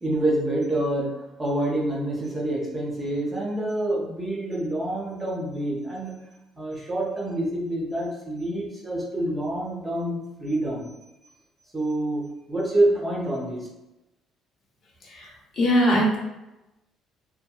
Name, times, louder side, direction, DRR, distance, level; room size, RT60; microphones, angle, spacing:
voice 1, 0.0-6.2 6.6-10.9 11.7-13.7, right 1 dB, 15° right, -3 dB, 0.5 m, -27 dB
voice 2, 15.6-16.2, equal, 45° left, -3 dB, 0.7 m, -20 dB
2.7 x 2.5 x 2.3 m, 0.96 s
cardioid pair, 155°, 0 cm